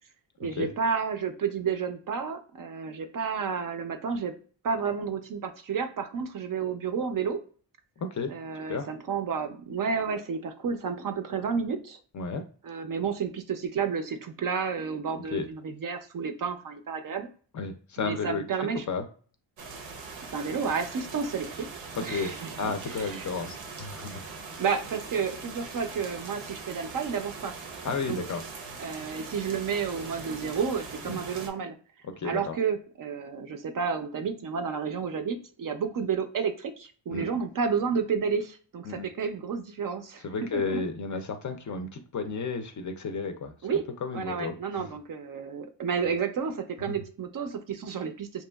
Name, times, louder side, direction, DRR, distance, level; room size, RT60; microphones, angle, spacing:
voice 1, 0.4-4.3 4.6-7.4 8.3-12.0 12.6-17.3 18.0-18.9 20.2-23.3 24.2-27.5 28.1-28.2 28.8-31.8 32.2-40.2 40.5-40.8 43.6-43.8 44.1-48.4, right 6 dB, 45° right, 8 dB, 0.4 m, -31 dB
voice 2, 8.0-8.3 8.5-8.9 12.1-12.4 15.3-15.5 17.5-19.0 22.0-24.2 27.8-28.5 31.1-31.2 32.2-32.6 37.1-37.3 38.8-39.1 40.2-44.9 46.9-47.0, left 4 dB, 40° left, 7 dB, 0.4 m, -33 dB
sound 1, 19.6-31.5, right 4 dB, 90° right, 0.8 m, -41 dB
2.8 x 2.2 x 2.2 m, 0.42 s
cardioid pair, 95°, 47 cm